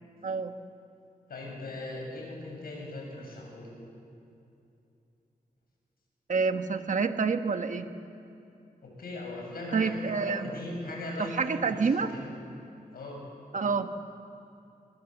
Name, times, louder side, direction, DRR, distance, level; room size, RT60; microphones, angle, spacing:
voice 1, 1.3-3.7 8.8-12.3 12.9-13.2, left 2 dB, 75° left, 0 dB, 7.0 m, -39 dB
voice 2, 6.3-7.9 9.7-10.5 11.2-12.1 13.5-13.9, right 5 dB, 55° right, 7 dB, 1.3 m, -28 dB
24.5 x 22.5 x 7.3 m, 2.7 s
wide cardioid pair, 120°, 16 cm